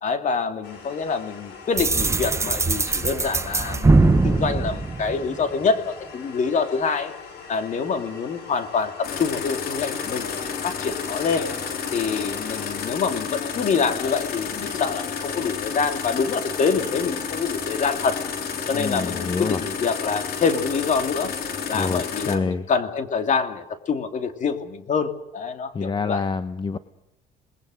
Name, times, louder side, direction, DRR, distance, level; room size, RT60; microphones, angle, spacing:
voice 1, 0.0-7.1 7.5-10.3 10.6-11.5 11.9-18.2 18.7-21.3 21.7-26.2, left 5 dB, 45° left, 7 dB, 2.8 m, -26 dB
sound 1, 0.6-12.8, left 5 dB, 85° left, 7.3 m, -42 dB
sound 2, 1.8-5.6, right 3 dB, 15° right, 0.9 m, -21 dB
sound 3, 9.0-22.4, left 6 dB, 65° left, 3.4 m, -31 dB
voice 2, 18.7-19.6 21.7-22.7 25.7-26.8, left 4 dB, 25° left, 12 dB, 0.9 m, -27 dB
28.0 x 20.5 x 6.5 m, 0.91 s
cardioid pair, 110°, 17 cm